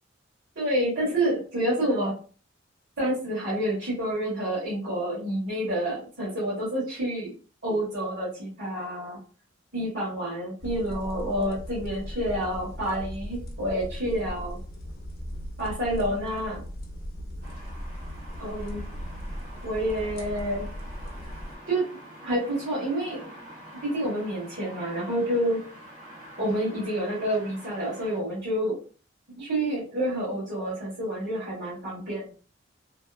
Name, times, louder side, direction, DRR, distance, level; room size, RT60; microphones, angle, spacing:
voice 1, 0.5-2.1 3.0-7.3 7.6-9.2 9.7-14.6 15.6-16.6 18.4-18.8 19.6-20.6 21.7-21.9 22.2-23.2 23.8-25.6 26.4-28.8 29.4-32.3, right 1 dB, 70° right, -10 dB, 1.3 m, -28 dB
sound 1, 10.6-21.6, equal, 50° left, 0.6 m, -38 dB
sound 2, 17.4-28.2, equal, 50° right, 1.0 m, -46 dB
2.8 x 2.3 x 2.3 m, 0.39 s
head